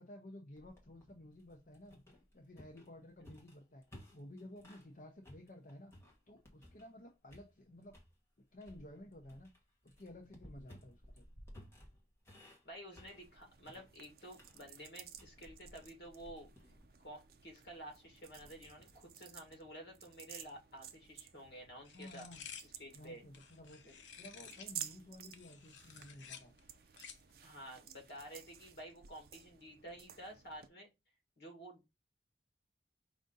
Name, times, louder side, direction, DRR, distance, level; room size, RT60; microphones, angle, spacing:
voice 1, 0.0-2.0 2.3-5.9 6.3-8.0 8.5-9.5 9.8-11.3 21.9-22.4 22.9-23.8 24.2-26.5, left 1 dB, 50° left, 2 dB, 0.7 m, -54 dB
sound 1, 0.6-4.9 5.2-7.0 7.3-8.1 8.6-19.1, equal, 15° left, 1.2 m, -59 dB
voice 2, 12.6-16.5 17.0-22.3 22.8-23.2 23.8-23.9 27.4-30.9 31.4-31.8, right 1 dB, 65° left, 2 dB, 1.7 m, -51 dB
sound 2, 13.0-30.7, right 9 dB, 55° right, 0.5 m, -54 dB
sound 3, 21.9-24.8 25.2-27.4, left 7 dB, 85° left, 0.6 m, -53 dB
5.0 x 2.7 x 3.7 m, 0.24 s
head